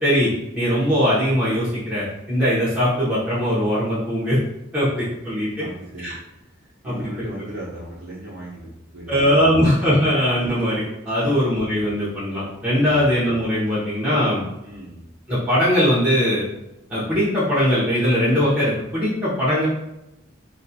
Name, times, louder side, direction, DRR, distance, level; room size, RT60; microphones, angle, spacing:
voice 1, 0.0-4.4 4.7-5.5 6.0-6.1 6.8-7.3 9.1-14.4 15.3-16.4 16.9-19.7, equal, 10° right, -11 dB, 0.7 m, -20 dB
voice 2, 5.6-9.7 11.2-11.3 12.8-13.0 14.5-15.1, right 1 dB, 55° right, -8 dB, 0.8 m, -38 dB
2.5 x 2.4 x 2.7 m, 0.89 s
head